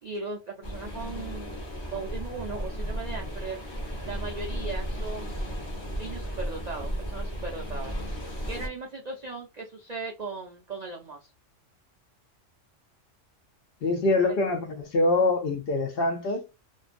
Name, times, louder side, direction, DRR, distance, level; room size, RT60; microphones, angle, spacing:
voice 1, 0.0-3.6 4.0-5.6 6.0-7.9 8.5-11.3 14.2-14.4, right 4 dB, 85° right, 0.3 m, -38 dB
sound 1, 0.6-8.7, equal, 25° left, 0.7 m, -34 dB
voice 2, 13.8-16.4, left 2 dB, 60° left, 0.7 m, -24 dB
2.5 x 2.2 x 2.4 m
omnidirectional pair, 1.3 m